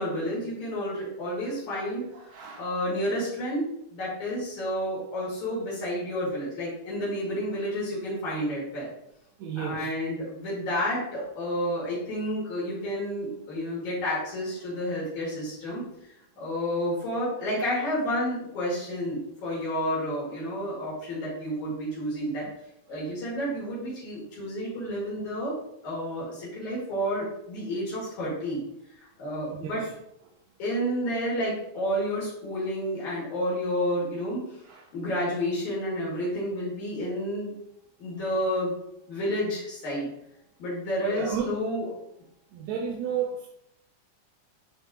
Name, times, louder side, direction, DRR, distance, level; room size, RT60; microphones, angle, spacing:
voice 1, 0.0-2.1 2.6-8.9 9.6-15.8 16.4-22.5 22.9-25.5 25.8-28.6 29.0-29.8 30.6-34.4 34.9-37.5 38.0-38.8 39.1-40.1 40.6-41.9, equal, 75° left, -7 dB, 3.8 m, -30 dB
voice 2, 2.1-2.7 9.4-9.9 29.5-29.9 34.7-34.8 41.1-41.6 42.5-43.5, right 7 dB, 80° right, 0 dB, 2.0 m, -33 dB
10.5 x 3.6 x 3.0 m, 0.78 s
omnidirectional pair, 3.4 m